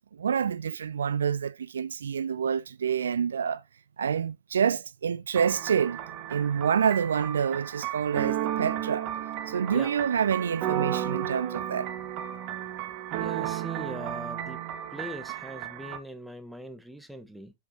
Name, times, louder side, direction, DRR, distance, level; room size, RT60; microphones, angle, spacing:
voice 1, 0.2-3.6 4.0-6.0 6.3-9.1 9.5-11.9, right 7 dB, 70° right, 0.3 m, -27 dB
sound 1, 5.3-16.0, right 11 dB, 40° right, 1.2 m, -33 dB
voice 2, 13.2-14.6 14.9-17.5, equal, 5° right, 1.2 m, -41 dB
7.5 x 6.4 x 2.9 m
figure-of-eight pair, 90°, 0 cm